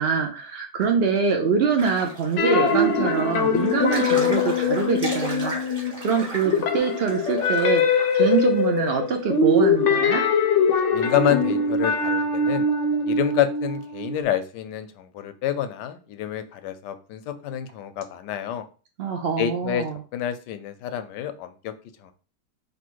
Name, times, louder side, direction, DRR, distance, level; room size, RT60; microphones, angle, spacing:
voice 1, 0.0-7.8 8.1-10.2 19.0-20.0, right 5 dB, 75° right, 3 dB, 0.5 m, -24 dB
sound 1, 1.8-8.6 8.9-9.0 9.3-10.3 10.6-10.7 11.1-11.2 11.4-11.6, right 1 dB, 25° right, 1.4 m, -37 dB
sound 2, 2.4-6.1 6.4-14.2, left 4 dB, 60° left, 0.8 m, -22 dB
voice 2, 10.9-12.7 13.1-18.6 19.4-19.8 20.1-21.7 22.0-22.1, left 11 dB, 85° left, 10 dB, 1.2 m, -28 dB
3.4 x 2.7 x 4.5 m, 0.36 s
omnidirectional pair, 1.8 m